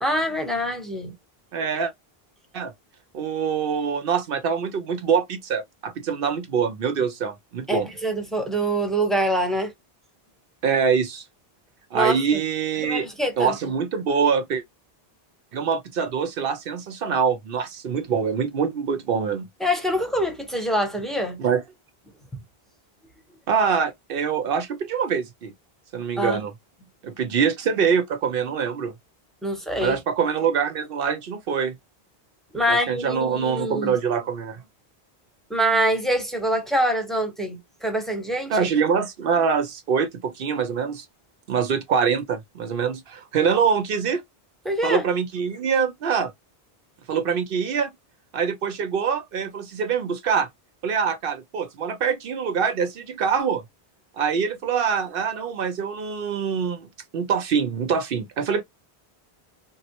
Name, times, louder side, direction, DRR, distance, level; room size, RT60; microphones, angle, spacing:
voice 1, 0.0-1.1 7.7-9.7 11.9-12.4 12.8-13.5 19.6-21.4 26.2-26.4 29.4-30.0 32.5-33.9 35.5-38.7 44.6-45.0, right 1 dB, ahead, 0.7 m, -25 dB
voice 2, 1.5-1.9 2.5-2.7 3.1-7.9 10.6-11.2 11.9-13.1 13.4-14.6 15.5-19.5 21.4-21.6 23.5-25.5 25.9-26.5 27.0-28.9 29.8-31.7 32.7-34.6 38.5-41.1 41.5-44.2 44.8-46.3 47.1-47.9 48.3-50.5 50.8-53.6 54.2-56.9 57.1-58.6, right 6 dB, 65° right, 0.8 m, -24 dB
3.7 x 2.0 x 2.8 m
omnidirectional pair, 1.0 m